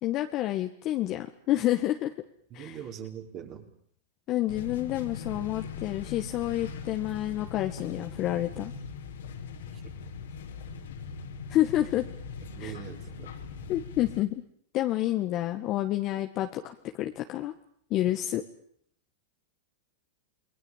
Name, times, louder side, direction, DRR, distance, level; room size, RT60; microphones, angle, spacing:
voice 1, 0.0-2.1 2.5-2.7 4.3-8.7 11.5-12.0 12.6-12.7 13.7-14.4 14.7-17.5 17.9-18.4, left 14 dB, 40° left, 5 dB, 1.7 m, -29 dB
voice 2, 2.5-3.7 9.7-9.8 12.4-13.3 18.1-18.2, right 9 dB, 40° right, 3 dB, 5.4 m, -42 dB
sound 1, 4.5-14.2, left 5 dB, 85° left, 4.5 m, -41 dB
28.5 x 21.0 x 7.5 m, 0.64 s
hypercardioid pair, 120°, 0 cm